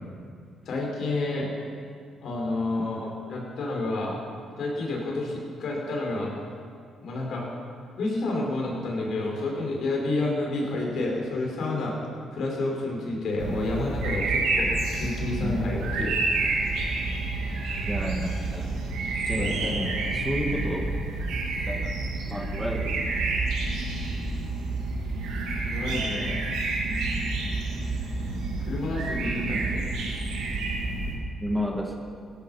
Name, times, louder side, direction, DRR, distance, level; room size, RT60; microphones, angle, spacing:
voice 1, 0.7-1.5 2.2-4.2 4.6-6.3 7.0-7.5 7.8-11.9 12.3-16.2 19.3-20.0 25.6-26.4 28.6-30.0, left 2 dB, 70° left, -2 dB, 5.2 m, -29 dB
sound 1, 13.4-31.1, right 3 dB, 85° right, 3.0 m, -29 dB
voice 2, 15.4-15.8 17.9-18.7 19.3-19.6 20.2-20.9 21.7-21.9 22.3-23.2 31.4-31.9, equal, ahead, 1 dB, 1.7 m, -31 dB
17.0 x 14.0 x 5.7 m, 2.2 s
cardioid pair, 90°, 0 cm